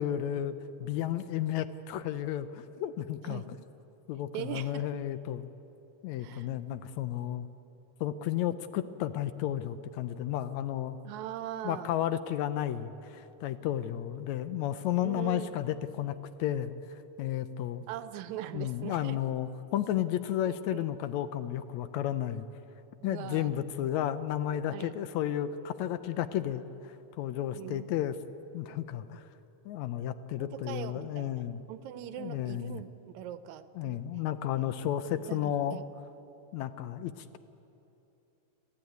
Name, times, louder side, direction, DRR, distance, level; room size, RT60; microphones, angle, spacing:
voice 1, 0.0-3.4 4.1-5.5 6.0-7.5 8.0-11.0 11.6-17.8 18.5-22.5 23.0-28.2 28.5-29.3 29.7-31.6 32.2-32.8 33.8-35.8 36.5-37.4, left 11 dB, 75° left, 12 dB, 1.9 m, -33 dB
voice 2, 4.3-4.9 6.2-6.5 11.0-11.9 15.0-15.5 17.9-19.2 20.5-20.8 23.0-23.5 24.7-24.9 27.5-27.9 30.4-34.0 35.3-35.9, right 11 dB, 80° right, 12 dB, 2.0 m, -41 dB
28.5 x 12.0 x 9.3 m, 3.0 s
omnidirectional pair, 3.4 m